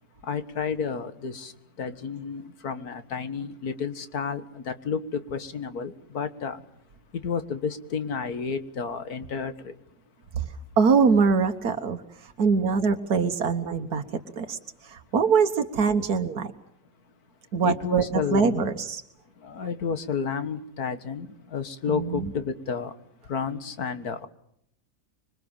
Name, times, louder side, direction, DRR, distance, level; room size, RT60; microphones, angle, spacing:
voice 1, 0.2-6.7 7.1-9.8 17.6-18.7 19.4-22.9 23.2-24.3, left 6 dB, 80° left, 10 dB, 2.1 m, -31 dB
voice 2, 10.8-14.0 14.4-16.5 17.5-19.0 21.9-22.3, right 5 dB, 90° right, 5 dB, 1.8 m, -23 dB
26.0 x 23.0 x 7.2 m, 0.70 s
omnidirectional pair, 1.6 m